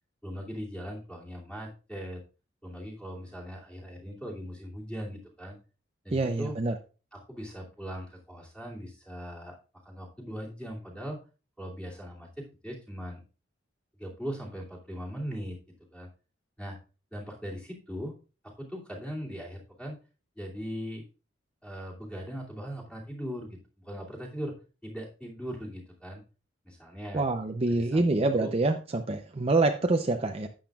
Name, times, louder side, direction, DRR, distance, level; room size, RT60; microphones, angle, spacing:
voice 1, 0.2-2.2 2.6-5.6 6.0-6.6 7.1-9.6 9.8-11.2 11.6-13.2 14.0-15.6 15.9-16.1 16.6-16.8 17.1-18.1 18.4-20.0 20.4-21.0 21.6-24.5 24.8-26.2 26.6-27.2 27.7-28.0 28.3-28.5, equal, 5° left, -2 dB, 2.6 m, -39 dB
voice 2, 6.1-6.7 27.1-30.5, right 2 dB, 30° right, 5 dB, 0.6 m, -26 dB
11.5 x 8.7 x 2.4 m, 0.34 s
head